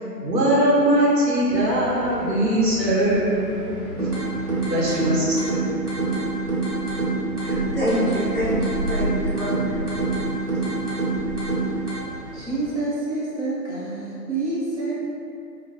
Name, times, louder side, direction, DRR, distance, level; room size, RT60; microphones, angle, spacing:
voice 1, 0.2-4.0 4.7-5.6, right 1 dB, 90° right, -6 dB, 1.0 m, -21 dB
Location noise, 1.5-12.7, equal, ahead, 0.3 m, -35 dB
sound 1, 4.0-12.0, right 3 dB, 65° right, 1.0 m, -26 dB
voice 2, 7.4-9.9, equal, 35° left, -12 dB, 0.8 m, -27 dB
voice 3, 12.3-14.9, right 2 dB, 45° right, -9 dB, 0.8 m, -27 dB
3.2 x 2.1 x 2.6 m, 2.5 s
figure-of-eight pair, 160°, 49 cm